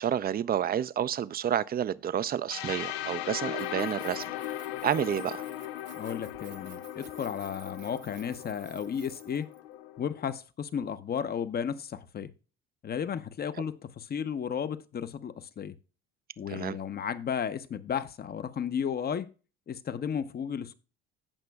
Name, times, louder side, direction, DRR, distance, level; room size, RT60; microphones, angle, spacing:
voice 1, 0.0-4.3 4.8-5.4 16.5-16.7, right 9 dB, 30° right, 0.5 m, -30 dB
sound 1, 2.5-10.3, left 13 dB, 85° left, 0.6 m, -38 dB
Keys jangling, 3.5-9.6, right 10 dB, 60° right, 1.3 m, -54 dB
voice 2, 5.9-9.5 10.0-12.3 12.8-15.7 16.4-19.3 19.7-20.7, left 7 dB, 35° left, 0.8 m, -34 dB
17.5 x 5.9 x 2.3 m
supercardioid pair, 80°, 29 cm